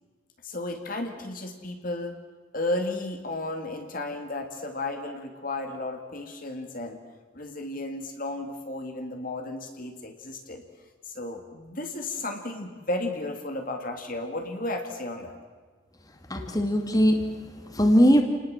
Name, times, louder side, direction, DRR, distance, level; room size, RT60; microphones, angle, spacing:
voice 1, 0.4-2.2 2.5-7.0 7.3-10.6 11.0-15.4, left 2 dB, 45° left, 5 dB, 2.1 m, -33 dB
voice 2, 16.3-18.2, equal, 20° left, 5 dB, 2.4 m, -21 dB
29.0 x 19.5 x 7.5 m, 1.5 s
head